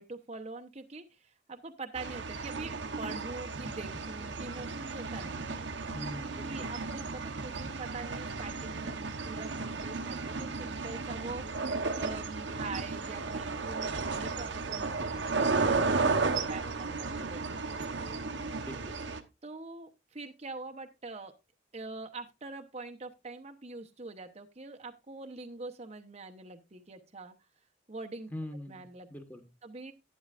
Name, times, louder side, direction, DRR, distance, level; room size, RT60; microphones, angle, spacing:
voice 1, 0.0-5.6 6.4-11.4 11.9-18.0 19.4-21.3 21.7-27.3 27.9-28.3 28.7-29.1 29.6-29.9, right 3 dB, 35° right, 0.9 m, -44 dB
sound 1, 2.0-19.2, right 4 dB, 70° right, 1.0 m, -34 dB
voice 2, 5.9-6.7 16.2-16.6 18.6-19.0 28.3-29.4, left 1 dB, 10° left, 1.5 m, -43 dB
11.5 x 10.0 x 2.5 m
head